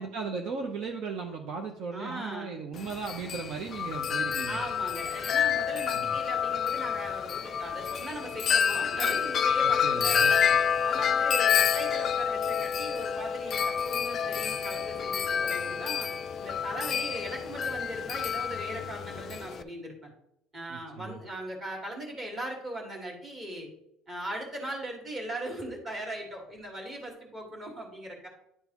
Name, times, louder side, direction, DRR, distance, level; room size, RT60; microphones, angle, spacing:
voice 1, 0.0-4.6 5.9-6.2 9.8-10.3 20.7-21.2, right 5 dB, 55° right, 3 dB, 0.8 m, -36 dB
voice 2, 1.9-2.6 4.5-16.1 16.4-20.1 20.5-23.7 24.1-28.3, right 1 dB, 25° right, 0 dB, 1.9 m, -39 dB
Wind chime, 2.8-19.6, left 7 dB, 35° left, 0.3 m, -28 dB
11.0 x 3.7 x 3.0 m, 0.76 s
cardioid pair, 140°, 0 cm